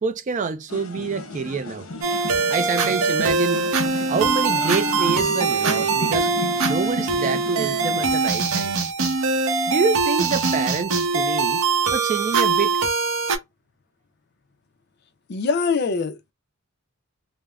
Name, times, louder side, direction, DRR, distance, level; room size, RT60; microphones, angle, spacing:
voice 1, 0.0-1.9 2.5-3.7 4.1-6.3 6.7-8.7 9.7-11.6 11.9-12.8, right 5 dB, 35° right, 0.3 m, -26 dB
sound 1, 0.7-8.2, left 2 dB, 70° left, 1.0 m, -33 dB
sound 2, 2.0-13.4, right 4 dB, 80° right, 0.7 m, -22 dB
voice 2, 15.3-16.3, left 5 dB, 50° left, 0.5 m, -23 dB
3.3 x 2.0 x 2.3 m
head